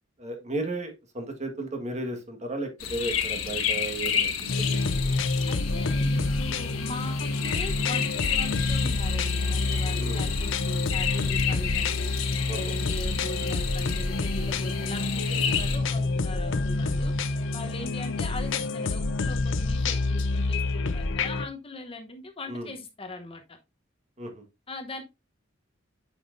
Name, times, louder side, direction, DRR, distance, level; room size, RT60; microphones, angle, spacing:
voice 1, 0.2-5.1 10.0-10.4 12.5-12.7 22.5-22.7 24.2-24.4, right 2 dB, 35° right, 1.6 m, -34 dB
sound 1, 2.8-15.8, left 8 dB, 80° left, 1.1 m, -32 dB
sound 2, 4.5-21.5, left 3 dB, 65° left, 0.7 m, -28 dB
voice 2, 5.5-12.1 12.5-17.1 17.5-23.6 24.7-25.0, left 2 dB, 30° left, 0.9 m, -40 dB
8.4 x 5.7 x 2.6 m
head